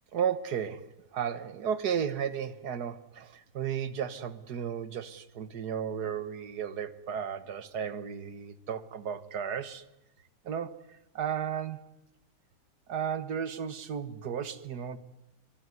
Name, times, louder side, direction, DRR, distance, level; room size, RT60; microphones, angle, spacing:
voice 1, 0.1-9.9 10.5-10.8 11.2-11.8 12.9-15.0, right 8 dB, 60° right, 1.8 m, -34 dB
24.5 x 22.5 x 9.6 m
omnidirectional pair, 2.0 m